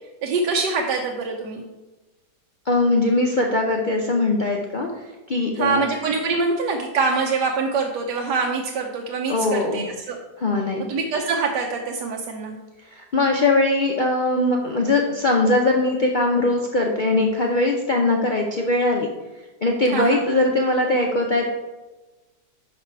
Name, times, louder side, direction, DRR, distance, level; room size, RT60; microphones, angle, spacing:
voice 1, 0.2-1.7 5.5-10.2 10.9-12.6 19.9-20.2, right 4 dB, 80° right, 1 dB, 1.3 m, -24 dB
voice 2, 2.7-5.0 5.3-5.8 9.3-9.9 10.4-10.8 12.9-19.1 19.6-21.4, left 2 dB, 85° left, 0 dB, 0.4 m, -21 dB
6.0 x 5.6 x 4.5 m, 1.1 s
omnidirectional pair, 1.9 m